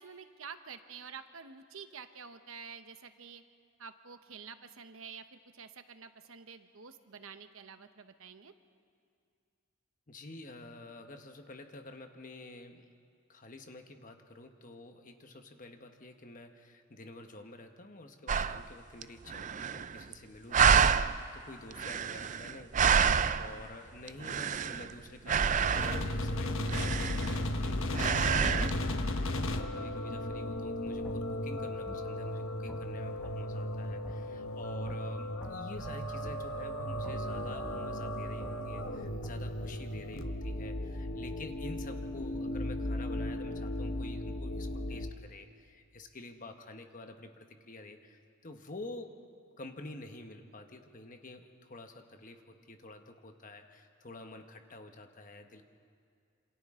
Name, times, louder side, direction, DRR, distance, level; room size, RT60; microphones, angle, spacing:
voice 1, 0.0-3.4 3.8-8.5 54.1-54.2, right 6 dB, 75° right, 9 dB, 1.0 m, -49 dB
voice 2, 10.1-12.8 13.3-23.1 23.4-49.1 49.6-55.6, left 2 dB, 40° left, 5 dB, 1.2 m, -49 dB
sound 1, 18.3-18.6 19.0-19.1 19.3-20.1 20.5-21.2 21.7-23.6 24.1-24.9 25.3-26.1 26.7-27.6 27.9-28.7, right 7 dB, 35° right, 0.4 m, -28 dB
sound 2, 25.7-45.1, left 1 dB, 70° left, 1.1 m, -35 dB
sound 3, 31.0-31.2 31.9-32.0 32.7-32.8 33.2-33.4 34.0-34.2 34.9-35.0 35.4-35.6 36.2-36.4 37.0-37.2 37.6-37.7 38.4-38.5 39.2-39.4, equal, ahead, 1.2 m, -47 dB
27.5 x 26.5 x 3.8 m, 2.3 s
head